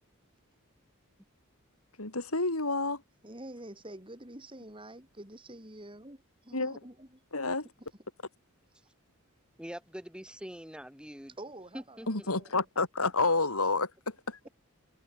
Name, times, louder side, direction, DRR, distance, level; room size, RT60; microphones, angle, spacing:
voice 1, 2.0-3.0 6.5-6.8 7.3-7.7 12.1-14.4, left 3 dB, 90° left, 4.4 m, -29 dB
voice 2, 3.2-7.2 11.4-12.5, right 1 dB, 25° right, 7.0 m, -47 dB
voice 3, 9.6-11.3 11.7-12.3, equal, 5° right, 4.7 m, -44 dB
head